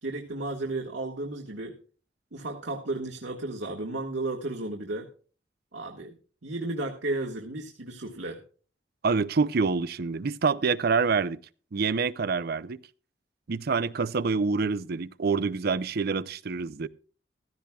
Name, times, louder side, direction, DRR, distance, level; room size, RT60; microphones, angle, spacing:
voice 1, 0.0-1.8 2.3-5.1 5.7-6.1 6.4-8.4, right 2 dB, 85° right, 1.5 m, -33 dB
voice 2, 9.0-11.4 11.7-12.8 13.5-16.9, right 4 dB, 60° right, 0.5 m, -26 dB
15.5 x 13.5 x 2.3 m
head